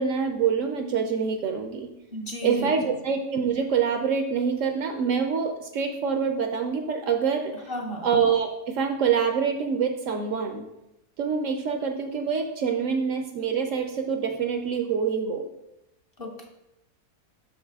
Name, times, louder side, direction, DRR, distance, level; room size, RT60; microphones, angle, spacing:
voice 1, 0.0-1.9 2.4-7.5 8.0-10.7 11.2-15.5, right 6 dB, 65° right, 5 dB, 0.8 m, -26 dB
voice 2, 2.1-2.7 7.5-8.1 16.2-16.5, equal, 45° left, 0 dB, 0.9 m, -34 dB
6.2 x 5.6 x 3.4 m, 0.90 s
omnidirectional pair, 1.6 m